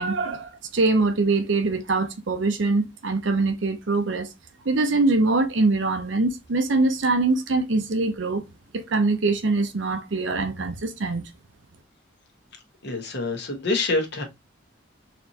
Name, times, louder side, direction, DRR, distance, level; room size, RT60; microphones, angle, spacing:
voice 1, 0.0-4.3 4.7-8.4 8.7-11.3, right 3 dB, 70° right, 0.7 m, -23 dB
voice 2, 12.8-14.2, left 3 dB, 60° left, 1.2 m, -26 dB
4.2 x 3.0 x 2.8 m
head